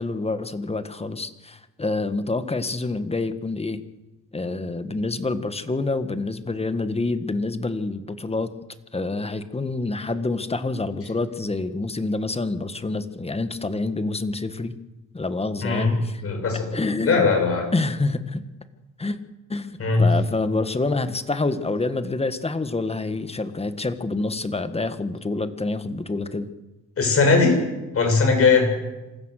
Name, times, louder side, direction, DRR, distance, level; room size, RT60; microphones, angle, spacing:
voice 1, 0.0-3.8 4.3-8.5 8.9-14.7 15.1-16.2 16.7-17.3 17.7-18.4 19.0-19.2 19.5-26.5, left 3 dB, 20° left, 10 dB, 1.7 m, -27 dB
voice 2, 16.2-16.7 17.0-17.7 19.8-20.0 27.0-27.6 27.9-28.7, left 4 dB, 50° left, 3 dB, 7.9 m, -19 dB
26.5 x 15.5 x 6.7 m, 1.1 s
cardioid pair, 90°, 30 cm